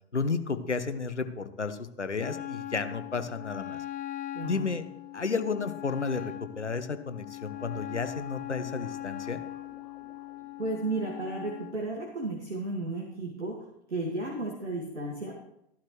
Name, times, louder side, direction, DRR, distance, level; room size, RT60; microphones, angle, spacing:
voice 1, 0.1-3.8 4.4-4.8 5.1-9.4, left 4 dB, 90° left, 10 dB, 1.0 m, -32 dB
Wind instrument woodwind instrument, 2.2-11.8, left 14 dB, 25° left, 0.7 m, -40 dB
voice 2, 4.3-4.7 10.6-15.4, right 2 dB, 85° right, 0 dB, 2.1 m, -34 dB
sound 1, 7.5-10.6, left 2 dB, 5° left, 4.5 m, -55 dB
14.5 x 11.5 x 3.2 m, 0.79 s
figure-of-eight pair, 90°, 34 cm